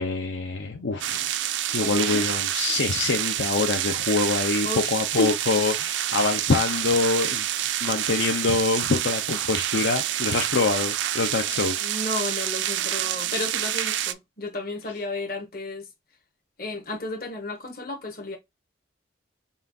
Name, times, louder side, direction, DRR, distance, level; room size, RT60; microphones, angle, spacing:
voice 1, 0.0-1.4 1.7-11.8, left 4 dB, 70° left, 0.6 m, -25 dB
sound 1, 1.0-14.1, right 12 dB, 70° right, 0.3 m, -28 dB
voice 2, 1.8-2.2 4.6-5.3 6.1-6.2 11.8-15.9 16.6-18.4, left 2 dB, 50° left, 1.2 m, -32 dB
5.4 x 2.4 x 2.6 m
head